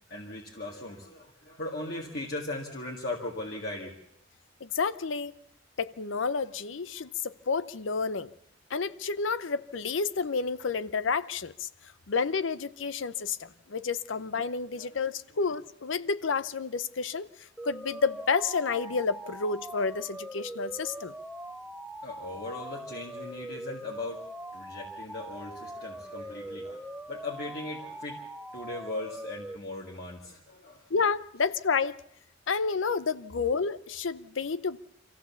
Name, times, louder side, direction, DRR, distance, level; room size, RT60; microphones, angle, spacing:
voice 1, 0.1-4.0 14.8-15.0 22.0-24.2 24.5-28.2 28.5-30.8, left 2 dB, 55° left, 1.9 m, -38 dB
voice 2, 4.6-5.3 5.8-8.3 8.7-11.7 12.1-21.1 30.9-32.0 32.5-34.8, left 5 dB, 90° left, 0.7 m, -30 dB
sound 1, 17.6-29.6, right 1 dB, 5° right, 0.7 m, -42 dB
25.5 x 15.0 x 7.0 m
head